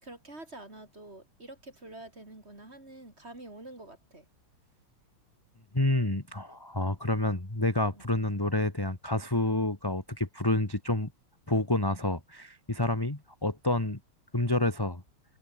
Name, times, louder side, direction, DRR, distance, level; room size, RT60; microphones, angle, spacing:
voice 1, 0.0-4.3 7.9-8.0, right 2 dB, 20° right, 4.3 m, -47 dB
voice 2, 5.7-11.1 11.5-14.0 14.3-15.0, left 1 dB, 10° left, 1.7 m, -28 dB
omnidirectional pair, 3.3 m